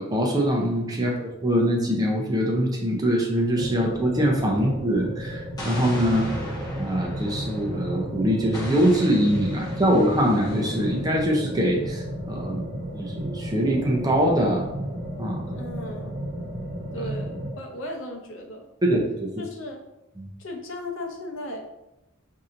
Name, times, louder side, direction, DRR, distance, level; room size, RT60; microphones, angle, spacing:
voice 1, 0.0-6.3 6.8-12.7 12.9-14.7 15.2-15.4 18.8-19.3 20.2-20.3, equal, 20° right, 0 dB, 0.5 m, -23 dB
sound 1, 3.5-17.5, equal, 55° right, 1.0 m, -33 dB
Explosion, 5.6-8.0 8.5-11.1, equal, 20° left, 0.9 m, -37 dB
voice 2, 15.5-16.1 16.9-18.7 19.4-19.8 20.4-21.6, left 1 dB, 65° left, 3 dB, 0.7 m, -36 dB
5.3 x 2.7 x 2.5 m, 0.93 s
head